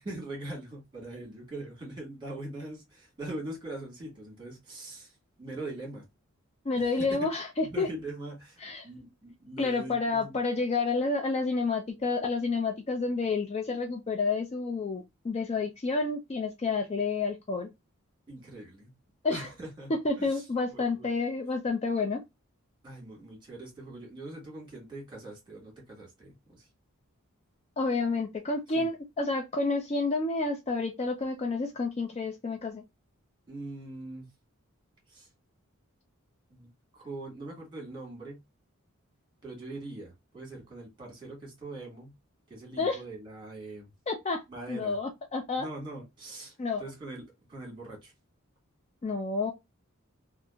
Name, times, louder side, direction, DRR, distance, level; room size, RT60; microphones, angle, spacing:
voice 1, 0.0-6.0 6.7-7.2 7.6-10.4 18.3-18.9 19.3-19.9 20.2-20.4 20.7-21.1 22.8-26.7 28.7-28.9 33.5-34.3 35.1-35.3 36.5-38.4 39.4-42.1 42.5-43.9 44.5-45.0 45.5-47.2 47.5-48.1, right 2 dB, 20° right, 1.5 m, -42 dB
voice 2, 6.7-7.9 8.6-8.9 9.6-17.7 19.2-19.5 19.9-22.2 27.8-32.8 42.8-43.0 44.1-44.4 44.7-45.7 46.6-46.8 49.0-49.5, left 3 dB, 30° left, 0.3 m, -29 dB
2.7 x 2.4 x 2.2 m
head